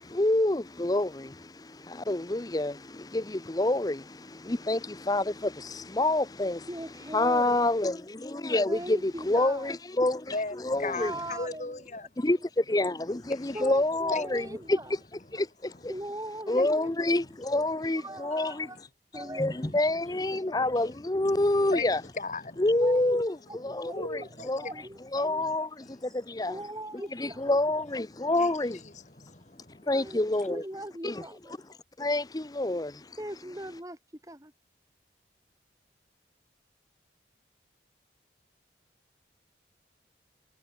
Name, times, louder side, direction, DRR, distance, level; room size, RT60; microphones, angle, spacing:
voice 1, 0.0-6.7 7.1-11.1 12.2-14.8 15.3-15.9 16.5-18.7 19.1-22.0 22.6-23.4 23.6-24.6 25.1-26.6 27.2-28.8 29.9-30.6 31.0-31.2 32.0-33.2, left 2 dB, 20° left, 0.6 m, -28 dB
voice 2, 6.7-7.6 8.7-9.8 11.0-12.0 12.4-12.5 13.5-14.9 15.9-17.2 17.9-18.8 19.1-19.9 22.8-23.2 23.5-25.3 26.1-27.5 29.9-31.6 33.2-34.5, right 1 dB, 20° right, 5.9 m, -40 dB
voice 3, 10.3-12.1 13.4-13.6 14.1-14.5 16.6-16.7 19.7-19.8 20.1-21.4 21.7-21.9 22.2-22.7 23.9-24.7 25.4-25.5 25.8-26.1 28.2-28.5 28.9-29.9, left 3 dB, 40° left, 1.6 m, -38 dB
head